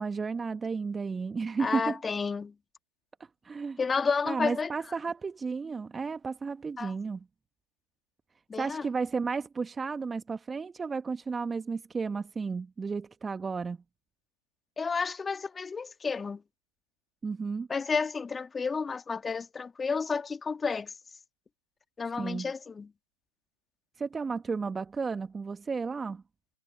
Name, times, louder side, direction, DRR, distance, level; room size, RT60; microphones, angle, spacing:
voice 1, 0.0-2.0 3.4-3.8 4.2-7.3 8.6-13.8 17.2-17.7 22.2-22.5 24.0-26.2, right 5 dB, 10° right, 1.4 m, -33 dB
voice 2, 1.6-2.5 3.8-4.7 6.8-6.9 8.5-8.8 14.8-16.4 17.7-20.9 22.0-22.9, left 5 dB, 10° left, 2.0 m, -31 dB
figure-of-eight pair, 130°, 0 cm